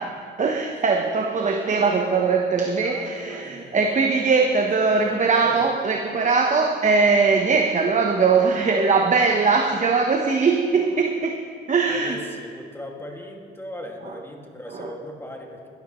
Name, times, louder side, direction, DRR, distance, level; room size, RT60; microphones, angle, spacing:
voice 1, 0.0-11.4 11.7-12.2 14.0-14.1 14.7-14.9, right 4 dB, 40° right, 3 dB, 1.0 m, -21 dB
voice 2, 2.6-3.8 4.5-5.8 11.9-15.7, left 1 dB, 10° left, 1 dB, 2.2 m, -39 dB
21.0 x 13.0 x 3.1 m, 2.3 s
cardioid pair, 90°, 20 cm